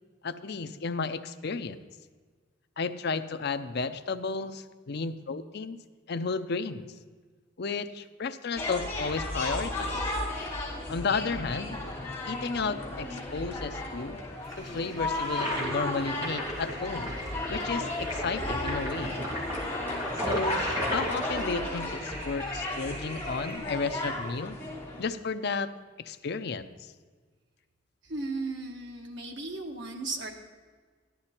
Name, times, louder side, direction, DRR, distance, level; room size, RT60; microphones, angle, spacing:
voice 1, 0.2-1.8 2.8-5.8 6.1-6.9 7.6-10.0 10.9-11.8 12.3-14.2 14.6-17.1 17.5-19.2 20.2-24.6 25.0-25.7 26.0-26.7, left 4 dB, 60° left, 10 dB, 0.6 m, -33 dB
sound 1, 8.6-25.0, left 2 dB, 10° left, 3.0 m, -35 dB
Toilet flush, 14.4-23.6, equal, 20° right, 3.4 m, -35 dB
voice 2, 28.0-30.3, right 3 dB, 65° right, 2 dB, 1.7 m, -36 dB
14.0 x 11.5 x 4.4 m, 1.5 s
head